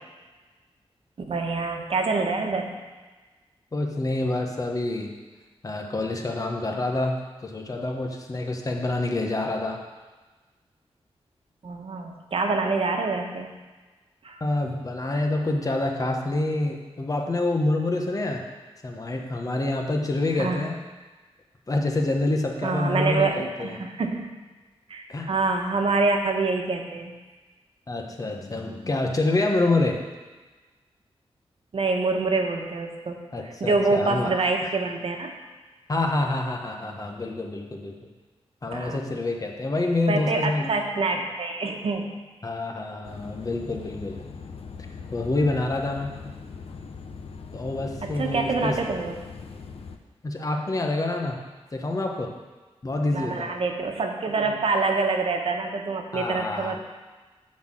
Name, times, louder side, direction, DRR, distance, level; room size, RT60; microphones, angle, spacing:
voice 1, 1.3-2.7 11.6-13.5 14.2-14.4 20.4-20.6 22.6-24.3 24.9-27.1 31.7-33.2 33.4-35.3 38.7-39.0 40.1-42.1 48.0-49.2 53.1-56.8, right 3 dB, 65° right, 2 dB, 1.2 m, -26 dB
voice 2, 3.7-5.1 5.6-7.1 7.4-9.8 14.4-18.4 18.8-20.8 21.7-23.8 25.1-25.3 27.9-30.0 33.3-34.3 34.6-34.7 35.9-37.9 38.6-40.7 42.4-44.2 45.1-46.2 47.5-48.8 50.2-51.4 51.7-52.3 52.8-53.5 56.1-56.8, left 2 dB, 35° left, 1 dB, 1.2 m, -27 dB
sound 1, 43.0-50.0, left 5 dB, 70° left, 0.7 m, -40 dB
10.0 x 4.3 x 7.5 m, 1.3 s
wide cardioid pair, 100°, 11 cm